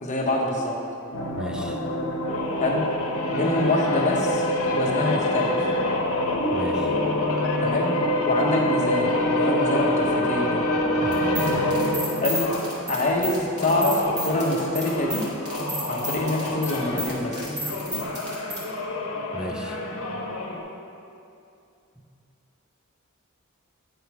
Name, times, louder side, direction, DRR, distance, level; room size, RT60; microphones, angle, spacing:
voice 1, 0.0-0.8 2.5-2.9 3.3-4.5 4.7-5.6 7.6-8.0 8.2-10.7 12.2-12.6 12.9-15.3 15.8-17.5, left 1 dB, 35° left, -2 dB, 1.0 m, -25 dB
sound 1, 1.1-12.8 13.5-20.6, left 1 dB, 75° left, 0.9 m, -26 dB
voice 2, 1.4-1.8 6.5-7.0 11.0-11.3 19.3-19.8 22.0-22.1, right 1 dB, 5° right, 3 dB, 0.4 m, -35 dB
sound 2, 11.1-18.6, equal, 35° right, 1.7 m, -32 dB
9.6 x 4.2 x 4.6 m, 2.6 s
head